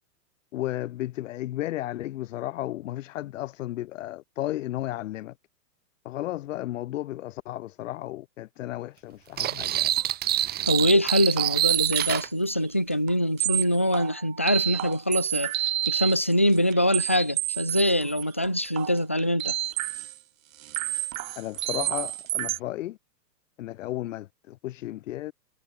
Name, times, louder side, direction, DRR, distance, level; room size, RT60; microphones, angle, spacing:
voice 1, 0.5-5.3 6.1-9.9 21.4-23.0 23.6-25.3, left 15 dB, 50° left, 2.0 m, -34 dB
sound 1, 9.4-12.3, right 13 dB, 20° right, 3.5 m, -26 dB
sound 2, 9.7-10.0 10.3-10.4 10.8-10.9 11.4-12.3 12.5-12.6 13.1-13.2 13.4-20.2 20.6-22.6, right 14 dB, 50° right, 5.2 m, -30 dB
voice 2, 10.7-19.6, equal, 10° left, 0.4 m, -24 dB
hypercardioid pair, 165°, 50 cm